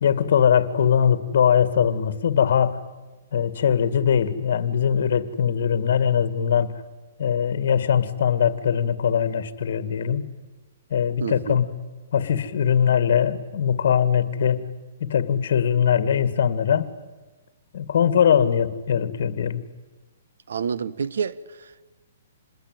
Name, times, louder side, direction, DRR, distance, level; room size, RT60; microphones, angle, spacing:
voice 1, 0.0-2.8 3.3-6.7 7.2-10.3 10.9-11.6 12.1-14.7 15.0-16.9 17.7-19.6, left 8 dB, 60° left, 2.1 m, -21 dB
voice 2, 11.2-11.6 20.5-21.9, right 6 dB, 80° right, 1.2 m, -29 dB
27.0 x 21.0 x 9.3 m
hypercardioid pair, 155°, 0 cm